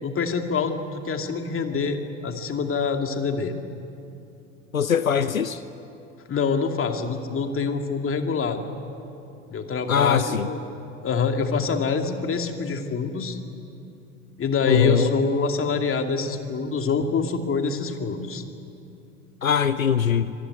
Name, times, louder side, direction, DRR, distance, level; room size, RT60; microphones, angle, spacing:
voice 1, 0.0-3.5 6.3-8.6 9.5-10.6 11.0-13.4 14.4-18.4, left 5 dB, 30° left, 5 dB, 2.5 m, -25 dB
voice 2, 4.7-5.6 9.9-10.5 14.7-15.1 19.4-20.3, left 7 dB, 90° left, 14 dB, 0.7 m, -22 dB
25.0 x 19.5 x 9.5 m, 2.7 s
figure-of-eight pair, 65°, 40 cm